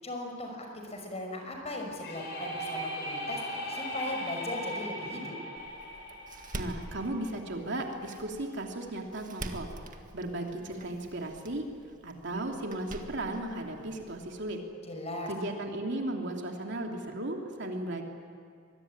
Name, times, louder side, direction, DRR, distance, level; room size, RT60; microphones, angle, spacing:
voice 1, 0.0-5.3 14.8-15.3, left 1 dB, 35° left, 3 dB, 5.7 m, -38 dB
sound 1, 2.0-7.7, equal, 60° left, 6.3 m, -38 dB
Door, 5.6-14.5, right 1 dB, 45° right, 1.9 m, -46 dB
voice 2, 6.5-9.7 10.1-11.6 12.0-14.6 15.3-18.0, right 1 dB, 60° right, 2 dB, 3.2 m, -35 dB
24.5 x 23.0 x 9.9 m, 2.1 s
head